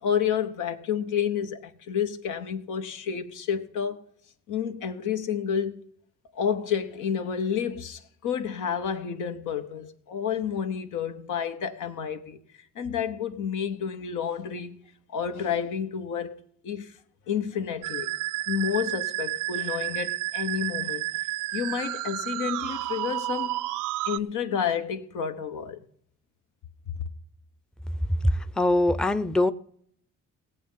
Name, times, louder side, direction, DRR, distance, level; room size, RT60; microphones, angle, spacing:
voice 1, 0.0-4.0 4.5-5.8 6.3-12.4 12.7-14.8 15.1-16.3 16.6-16.9 17.3-18.1 18.5-21.1 21.5-23.6 24.0-25.8, left 7 dB, 85° left, 1.2 m, -30 dB
Musical instrument, 17.8-24.2, right 18 dB, 90° right, 0.5 m, -31 dB
voice 2, 28.2-29.5, left 1 dB, 5° left, 0.5 m, -23 dB
17.5 x 7.8 x 5.6 m
cardioid pair, 90°, 30 cm